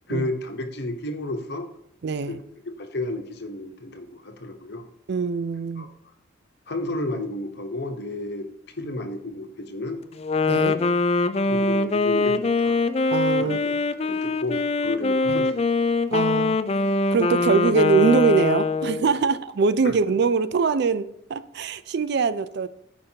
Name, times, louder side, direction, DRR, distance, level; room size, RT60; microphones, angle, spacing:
voice 1, 0.1-1.7 2.3-2.4 2.6-4.8 5.8-5.9 6.7-8.5 8.8-10.0 10.5-10.9 11.4-12.8 13.4-15.6 19.8-19.9, left 2 dB, 55° left, 1.0 m, -32 dB
voice 2, 2.0-2.4 5.1-5.9 10.4-10.8 13.1-13.6 15.3-15.5 16.1-16.6 17.1-22.7, right 5 dB, 55° right, 0.4 m, -23 dB
Wind instrument woodwind instrument, 10.2-19.1, left 3 dB, 30° left, 0.3 m, -23 dB
13.0 x 5.2 x 2.8 m
head